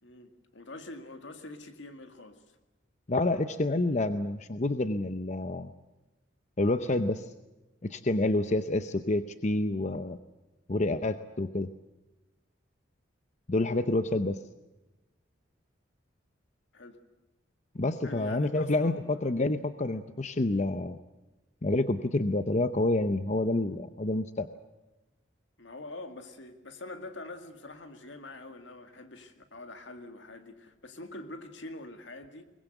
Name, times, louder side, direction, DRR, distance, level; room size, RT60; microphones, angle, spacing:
voice 1, 0.0-2.4 13.6-13.8 16.7-17.0 18.0-19.2 25.6-32.4, left 2 dB, 70° left, 7 dB, 2.1 m, -45 dB
voice 2, 3.1-5.7 6.6-7.3 7.8-10.2 10.7-11.7 13.5-14.4 17.7-21.0 21.6-24.5, left 2 dB, 35° left, 11 dB, 0.7 m, -28 dB
22.5 x 20.5 x 8.1 m, 1.0 s
head